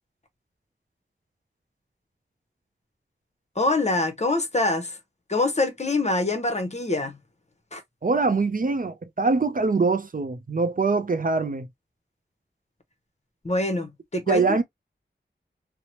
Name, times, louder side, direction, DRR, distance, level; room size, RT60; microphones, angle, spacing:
voice 1, 3.6-5.0 5.3-7.2 7.7-7.8 13.4-14.5, left 2 dB, 35° left, 0.7 m, -25 dB
voice 2, 8.0-11.7 14.3-14.6, right 4 dB, 45° right, 0.4 m, -23 dB
2.8 x 2.0 x 2.8 m
wide cardioid pair, 50°, 20 cm